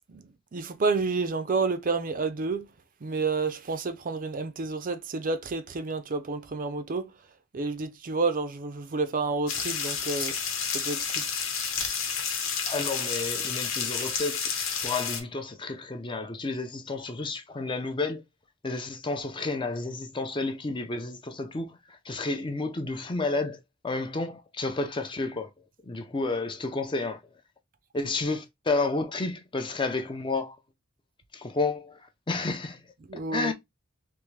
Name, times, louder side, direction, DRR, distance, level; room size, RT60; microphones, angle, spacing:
voice 1, 0.5-2.7 3.0-7.1 7.5-10.4 10.7-11.2 33.1-33.5, right 3 dB, 40° right, 0.5 m, -29 dB
sound 1, 9.5-15.2, left 6 dB, 75° left, 1.1 m, -30 dB
voice 2, 12.7-14.4 14.8-18.2 18.6-25.5 25.8-27.2 27.9-30.6 31.3-32.0 32.3-32.8 33.3-33.5, left 3 dB, 25° left, 0.6 m, -31 dB
3.5 x 3.0 x 3.2 m
head